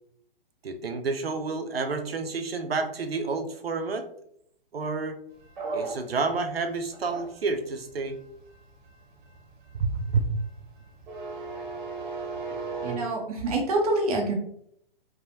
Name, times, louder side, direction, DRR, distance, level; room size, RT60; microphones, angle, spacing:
voice 1, 0.6-4.1 4.7-5.2 5.7-8.2 9.7-10.3, right 4 dB, 90° right, 6 dB, 0.6 m, -29 dB
sound 1, 5.4-13.0, right 4 dB, 55° right, 1.0 m, -37 dB
voice 2, 12.5-14.3, right 2 dB, 40° right, 1 dB, 0.7 m, -27 dB
3.5 x 2.1 x 2.6 m, 0.70 s
hypercardioid pair, 130°, 29 cm